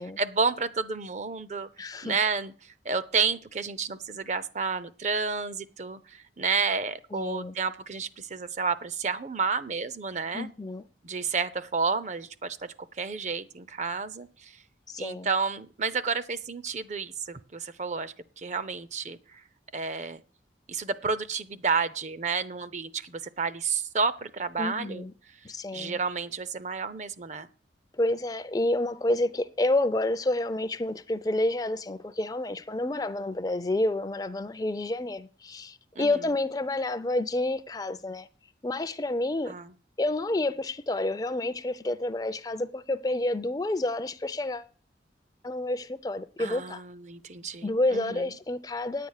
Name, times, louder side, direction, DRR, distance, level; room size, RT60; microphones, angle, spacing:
voice 1, 0.0-2.5 2.8-10.5 11.0-14.6 15.0-19.2 19.7-20.2 20.7-25.1 25.7-27.5 36.0-36.2 39.5-39.7 46.4-48.3, right 5 dB, 40° right, 0.6 m, -31 dB
voice 2, 1.8-2.2 7.1-7.5 10.3-10.8 14.9-15.3 24.6-25.1 25.4-26.0 28.0-38.3 38.6-39.5 40.0-44.7 45.4-46.8 47.6-49.1, left 2 dB, 20° left, 0.4 m, -29 dB
9.9 x 8.5 x 6.4 m
head